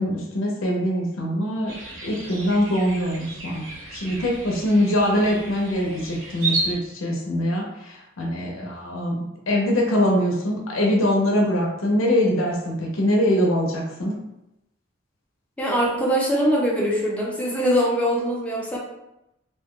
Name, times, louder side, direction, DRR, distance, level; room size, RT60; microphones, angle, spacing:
voice 1, 0.0-1.7 2.0-3.6 3.9-14.2, left 1 dB, 90° left, -2 dB, 0.6 m, -23 dB
sound 1, 1.7-6.8, right 3 dB, 90° right, 0.8 m, -32 dB
voice 2, 15.6-18.8, equal, 5° left, -4 dB, 0.6 m, -22 dB
2.7 x 2.2 x 3.5 m, 0.88 s
head